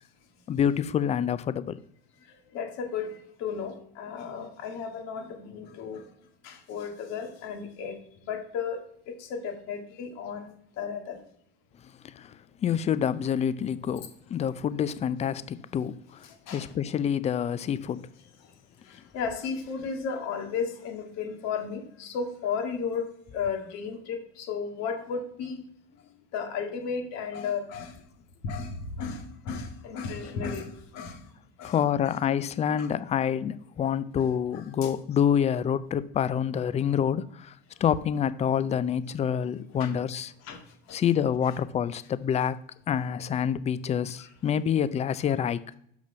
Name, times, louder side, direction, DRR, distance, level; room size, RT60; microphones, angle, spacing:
voice 1, 0.5-1.8 12.0-18.1 31.6-40.3 40.9-42.6 42.9-45.6, left 8 dB, 20° left, 0.4 m, -27 dB
voice 2, 2.3-6.1 6.4-11.2 14.5-14.6 16.5-16.7 18.4-18.5 18.9-25.7 26.3-28.0 28.4-31.2 31.6-31.8 32.8-32.9 34.8-34.9 39.8-39.9 40.4-40.6 40.9-41.0 44.2-44.3, left 6 dB, 60° left, 1.9 m, -34 dB
6.1 x 5.9 x 5.6 m
supercardioid pair, 105°, 30 cm